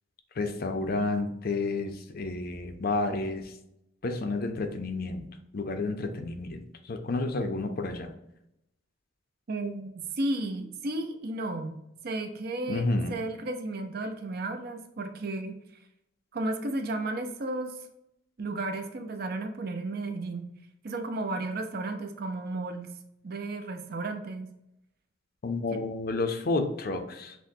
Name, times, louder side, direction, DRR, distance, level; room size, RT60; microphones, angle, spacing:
voice 1, 0.4-3.5 4.0-5.2 5.5-8.1 12.7-13.2 25.4-27.4, left 3 dB, 50° left, 6 dB, 0.5 m, -30 dB
voice 2, 9.5-11.8 12.0-15.6 16.3-17.8 18.4-20.5 20.8-23.0 23.2-24.5 25.7-25.9, right 2 dB, 50° right, 6 dB, 0.5 m, -33 dB
6.0 x 2.1 x 2.6 m, 0.83 s
head